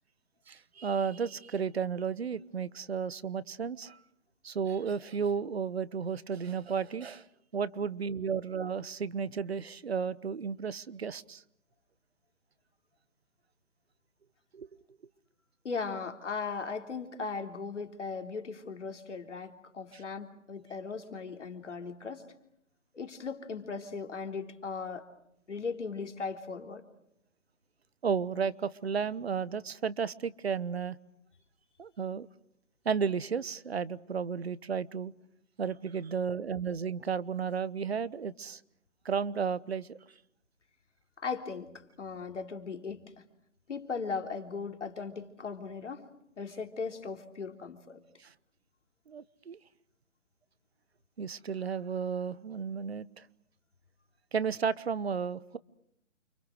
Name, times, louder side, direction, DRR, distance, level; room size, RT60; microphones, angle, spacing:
voice 1, 0.5-4.0 4.4-7.3 7.5-11.4 14.5-14.7 28.0-31.0 31.8-32.3 32.8-35.1 35.6-38.6 39.0-40.0 48.2-48.3 49.1-49.6 51.2-53.3 54.3-55.6, right 6 dB, 50° right, 1.1 m, -33 dB
voice 2, 15.6-22.3 22.9-25.1 25.5-26.8 41.2-43.2 43.7-46.1 46.4-48.0, left 5 dB, 65° left, 3.6 m, -38 dB
29.5 x 26.0 x 6.5 m
hypercardioid pair, 165°, 39 cm